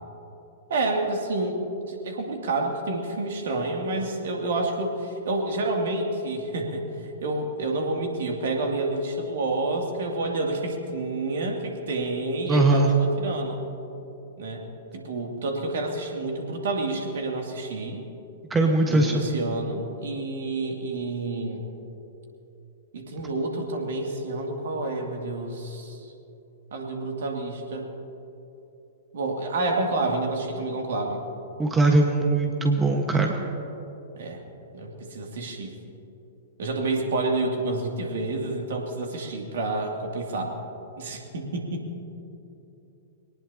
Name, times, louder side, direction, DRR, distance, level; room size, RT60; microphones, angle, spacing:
voice 1, 0.7-13.6 14.4-14.7 14.9-18.0 18.9-21.6 22.9-26.1 26.7-27.9 29.1-31.2 34.2-34.4 34.7-35.7 36.6-40.5 41.0-41.8, right 2 dB, 60° right, 1 dB, 2.6 m, -29 dB
voice 2, 12.5-12.9 18.5-19.2 31.6-33.3, right 2 dB, 15° right, 2 dB, 1.4 m, -21 dB
23.0 x 19.0 x 2.9 m, 2.9 s
figure-of-eight pair, 105°, 0 cm